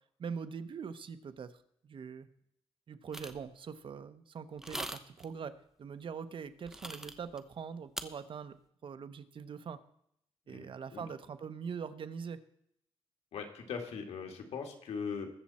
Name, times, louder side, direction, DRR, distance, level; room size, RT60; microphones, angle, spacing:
voice 1, 0.2-1.5 1.8-2.3 2.9-5.5 5.8-8.5 8.8-9.8 10.5-12.4, right 6 dB, 55° right, 11 dB, 0.9 m, -42 dB
sound 1, 3.1-3.4 4.6-5.2 6.7-7.4 8.0-8.1, right 1 dB, 5° right, 0.9 m, -41 dB
voice 2, 10.5-11.1 13.3-15.3, left 5 dB, 90° left, 4 dB, 2.2 m, -40 dB
21.5 x 7.5 x 4.3 m, 0.72 s
wide cardioid pair, 120°, 10 cm